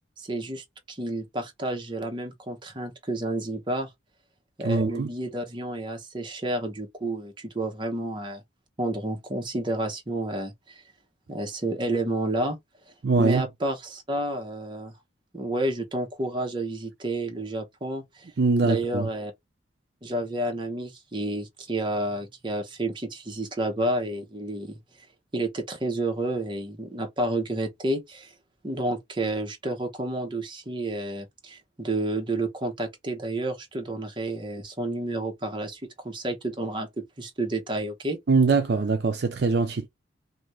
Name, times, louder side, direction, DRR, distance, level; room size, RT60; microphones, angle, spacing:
voice 1, 0.2-3.9 4.6-8.4 8.8-10.8 11.3-12.6 13.2-14.9 15.3-18.3 18.6-19.3 20.0-24.8 25.3-28.3 28.6-36.9 37.2-38.2, right 1 dB, 25° right, 0.7 m, -30 dB
voice 2, 4.6-5.1 13.0-13.4 18.4-19.1 38.3-39.9, right 4 dB, 55° right, 0.5 m, -22 dB
2.7 x 2.6 x 3.1 m
head